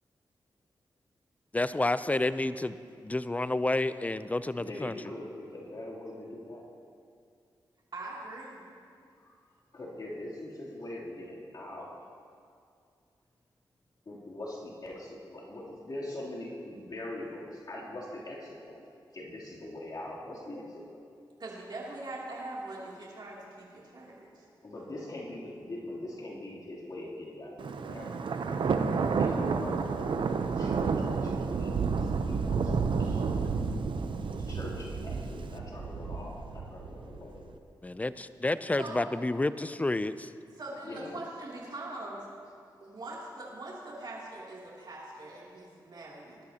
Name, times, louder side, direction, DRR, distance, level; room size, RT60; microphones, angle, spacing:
voice 1, 1.5-2.8 3.0-5.0 37.8-40.1, left 2 dB, 15° left, 14 dB, 0.5 m, -29 dB
voice 2, 4.5-6.7 9.7-11.9 14.0-21.0 24.6-28.1 28.4-28.6 29.2-32.7 33.0-33.3 34.3-37.4 40.8-41.2, left 1 dB, 50° left, -7 dB, 3.2 m, -42 dB
voice 3, 7.9-8.7 21.4-24.4 38.8-39.0 40.6-42.3 42.8-46.4, right 2 dB, 55° right, -5 dB, 2.9 m, -42 dB
Thunder, 27.6-37.4, right 5 dB, 70° right, 0.7 m, -30 dB
20.0 x 12.0 x 2.9 m, 2.3 s
cardioid pair, 55°, 9 cm